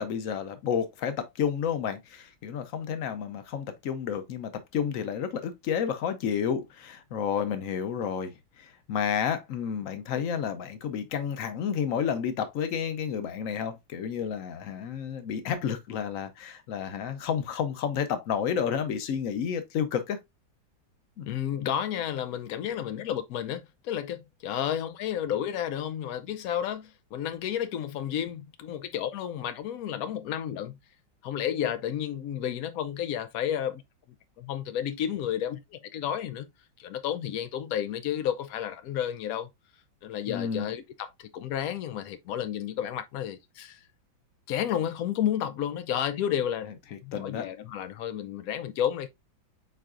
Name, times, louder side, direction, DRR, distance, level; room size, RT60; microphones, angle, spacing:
voice 1, 0.0-20.2 21.2-21.3 40.3-40.7 46.9-47.5, left 7 dB, 60° left, 0.9 m, -31 dB
voice 2, 21.3-30.8 31.2-33.8 34.4-36.5 36.8-39.5 40.0-43.8 44.5-46.7 47.0-49.1, left 10 dB, 90° left, 0.7 m, -31 dB
4.8 x 4.5 x 2.4 m
omnidirectional pair, 2.1 m